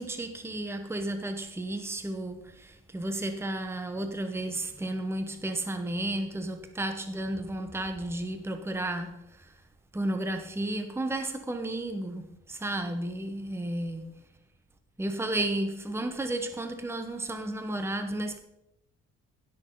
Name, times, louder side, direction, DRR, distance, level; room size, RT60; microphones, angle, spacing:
voice 1, 0.0-9.6 9.9-14.1 15.0-18.4, right 1 dB, 10° right, 1.0 m, -33 dB
15.5 x 6.4 x 3.9 m
cardioid pair, 90°, 30 cm